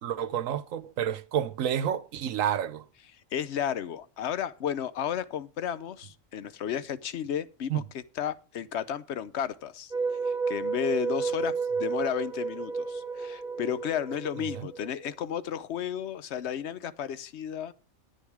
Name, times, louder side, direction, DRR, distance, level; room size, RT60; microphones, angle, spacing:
voice 1, 0.0-2.8 7.7-7.8 14.5-14.7, right 9 dB, 75° right, 1.2 m, -29 dB
voice 2, 3.1-9.9 10.2-17.7, left 9 dB, 60° left, 0.9 m, -33 dB
sound 1, 9.9-15.1, right 5 dB, 35° right, 1.6 m, -32 dB
10.5 x 9.4 x 4.8 m
omnidirectional pair, 1.4 m